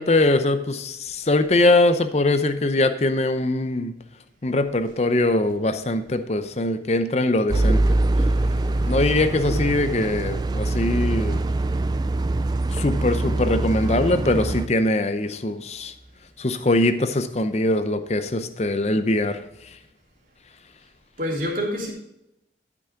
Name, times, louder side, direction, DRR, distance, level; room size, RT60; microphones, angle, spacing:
voice 1, 0.0-3.9 4.4-8.0 8.9-11.4 12.7-15.9 16.4-19.8, left 2 dB, 35° left, 10 dB, 0.7 m, -22 dB
sound 1, 7.5-14.7, right 2 dB, 20° right, 0.3 m, -23 dB
voice 2, 21.2-21.9, equal, 45° right, -2 dB, 3.1 m, -27 dB
12.5 x 6.1 x 4.6 m, 0.83 s
head